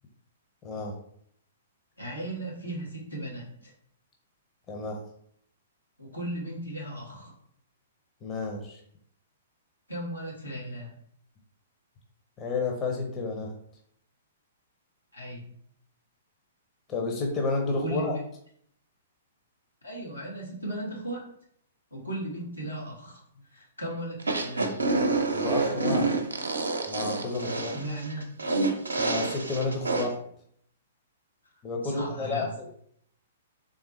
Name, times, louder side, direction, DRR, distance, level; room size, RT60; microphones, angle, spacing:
voice 1, 0.6-1.0 4.7-5.0 8.2-8.8 12.4-13.5 16.9-18.2 25.3-26.2 26.9-27.7 29.0-30.2 31.6-32.5, left 3 dB, 25° left, 1 dB, 0.8 m, -31 dB
voice 2, 2.0-3.7 6.0-7.3 9.9-10.9 15.1-15.5 17.8-18.2 19.8-21.2 21.9-23.2 23.5-24.8 27.6-28.2 31.8-32.5, right 1 dB, 90° left, -4 dB, 1.6 m, -36 dB
sound 1, 24.2-30.1, right 3 dB, 80° right, 0.6 m, -27 dB
3.8 x 3.4 x 3.1 m, 0.66 s
figure-of-eight pair, 115°, 0 cm